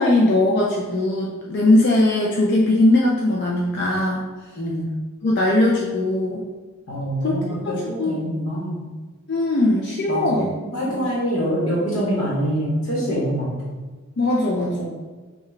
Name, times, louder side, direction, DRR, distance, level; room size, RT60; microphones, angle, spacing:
voice 1, 0.0-4.3 5.2-6.4 7.2-7.6 7.8-8.2 9.3-10.5 10.9-11.1 14.2-14.8, left 2 dB, 50° left, -3 dB, 0.4 m, -20 dB
voice 2, 4.5-4.9 6.9-8.9 10.1-13.8 14.8-14.9, equal, 70° left, -6 dB, 1.0 m, -25 dB
5.7 x 2.2 x 3.2 m, 1.3 s
head